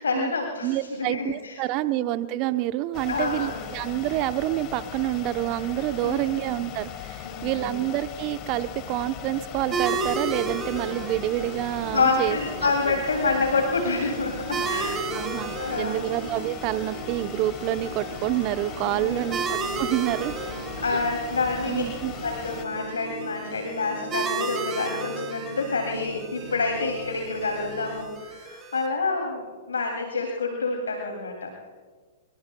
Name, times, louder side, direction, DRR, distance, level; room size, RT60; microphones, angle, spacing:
voice 1, 0.0-2.1 3.1-3.6 6.0-6.3 7.2-7.7 11.9-15.0 15.3-16.1 18.8-19.3 20.8-21.8 22.2-31.5, left 4 dB, 75° left, 2 dB, 2.7 m, -28 dB
voice 2, 0.6-12.7 15.1-20.3 20.9-21.0 21.7-22.1, right 15 dB, 40° right, 12 dB, 0.8 m, -28 dB
sound 1, 2.9-22.6, left 10 dB, 35° left, 1.5 m, -39 dB
sound 2, 9.5-28.1, right 4 dB, 75° right, 4.2 m, -40 dB
sound 3, 9.7-28.9, right 4 dB, 20° right, 2.6 m, -35 dB
26.0 x 23.5 x 2.3 m, 1.5 s
figure-of-eight pair, 110°, 0 cm